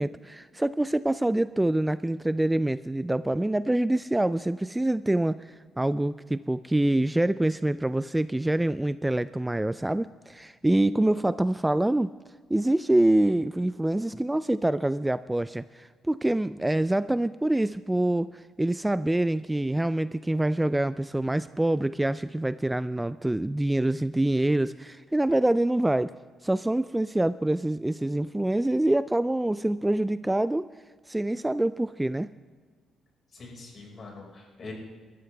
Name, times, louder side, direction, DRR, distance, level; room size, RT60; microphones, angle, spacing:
voice 1, 0.0-12.1 12.5-26.1 26.4-30.7 31.1-32.3, right 1 dB, 10° right, 15 dB, 0.3 m, -25 dB
voice 2, 33.3-34.7, left 3 dB, 45° left, -1 dB, 5.1 m, -43 dB
21.0 x 13.5 x 3.4 m, 1.5 s
cardioid pair, 90°, 0 cm